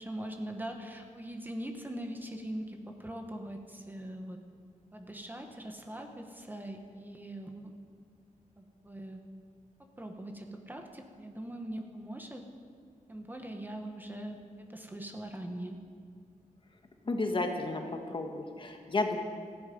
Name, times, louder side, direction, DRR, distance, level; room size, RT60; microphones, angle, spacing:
voice 1, 0.0-4.4 4.9-7.7 8.6-9.2 9.8-12.4 13.1-14.4 14.7-15.8, right 1 dB, 15° right, 3 dB, 1.3 m, -41 dB
voice 2, 17.0-17.8 18.1-19.2, left 2 dB, 35° left, 4 dB, 1.5 m, -32 dB
18.5 x 14.5 x 5.3 m, 2.2 s
wide cardioid pair, 155°, 14 cm